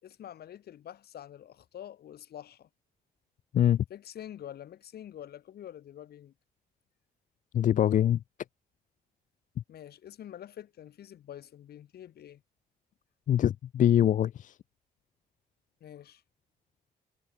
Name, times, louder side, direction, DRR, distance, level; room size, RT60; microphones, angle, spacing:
voice 1, 0.0-2.7 3.9-6.3 9.7-12.4 15.8-16.2, left 11 dB, 70° left, 7.5 m, -46 dB
voice 2, 3.5-3.8 7.5-8.2 13.3-14.5, left 10 dB, 50° left, 0.4 m, -24 dB
cardioid pair, 95°, 17 cm